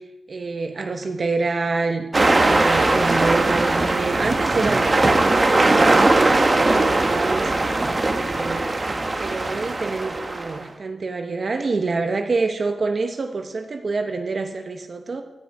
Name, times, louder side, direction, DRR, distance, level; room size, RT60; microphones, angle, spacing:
voice 1, 0.3-5.7 6.2-8.7 9.2-15.2, right 3 dB, 45° right, 5 dB, 1.0 m, -27 dB
sound 1, 2.1-10.6, right 2 dB, 25° right, 1.3 m, -19 dB
14.5 x 6.2 x 9.7 m, 1.1 s
wide cardioid pair, 145°, 0 cm